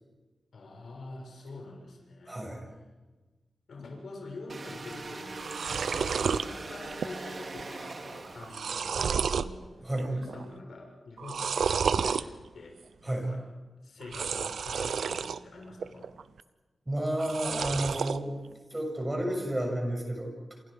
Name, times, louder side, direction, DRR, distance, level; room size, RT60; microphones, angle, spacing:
voice 1, 0.5-2.4 3.7-5.6 5.9-12.8 13.1-13.4 13.8-16.1, left 2 dB, 70° left, 0 dB, 7.1 m, -46 dB
voice 2, 2.3-2.7 9.8-10.1 13.0-13.3 16.9-18.4 18.7-20.6, right 1 dB, 15° right, 2 dB, 7.1 m, -31 dB
sound 1, 4.5-9.0, right 3 dB, 40° right, 2.5 m, -41 dB
sound 2, 4.9-5.0 5.2-6.5 6.9-7.3 7.6-7.7 8.2-9.5 10.0-10.4 11.2-12.2 14.0-15.4 15.8-16.4 17.1-18.2, right 6 dB, 90° right, 0.8 m, -31 dB
28.5 x 27.5 x 5.2 m, 1.2 s
wide cardioid pair, 140°, 0 cm